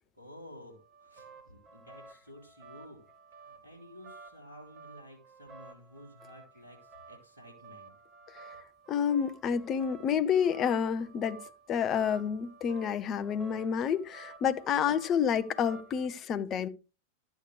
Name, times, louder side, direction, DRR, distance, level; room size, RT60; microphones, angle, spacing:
voice 1, 0.1-3.0 3.4-7.9 10.1-10.2, equal, 80° right, 3.1 m, -52 dB
sound 1, 0.7-16.1, right 4 dB, 25° right, 2.0 m, -53 dB
voice 2, 8.9-11.4 11.7-16.7, left 7 dB, 30° left, 0.8 m, -29 dB
12.0 x 8.3 x 3.3 m
figure-of-eight pair, 90°, 0 cm